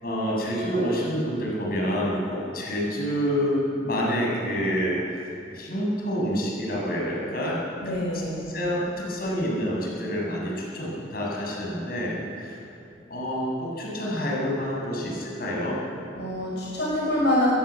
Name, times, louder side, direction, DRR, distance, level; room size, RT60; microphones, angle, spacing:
voice 1, 0.0-5.0 5.5-7.9 8.5-12.6 13.1-15.8, equal, 55° left, -3 dB, 7.6 m, -28 dB
voice 2, 7.8-8.4 16.2-17.5, left 1 dB, 75° left, -4 dB, 5.9 m, -25 dB
22.5 x 22.0 x 8.6 m, 2.7 s
head